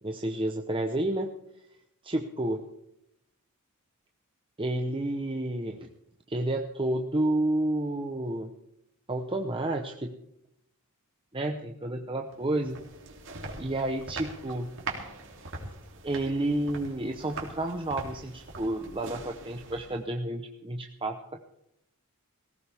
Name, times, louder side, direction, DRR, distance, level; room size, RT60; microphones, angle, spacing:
voice 1, 0.0-1.3 2.0-2.7 4.6-5.9 6.3-8.5 9.1-10.1 11.3-12.8 13.6-14.7 16.0-21.4, right 1 dB, 25° right, 3 dB, 0.9 m, -30 dB
sound 1, 12.3-20.1, right 3 dB, 60° right, 3.1 m, -42 dB
19.0 x 16.5 x 3.5 m, 0.79 s
head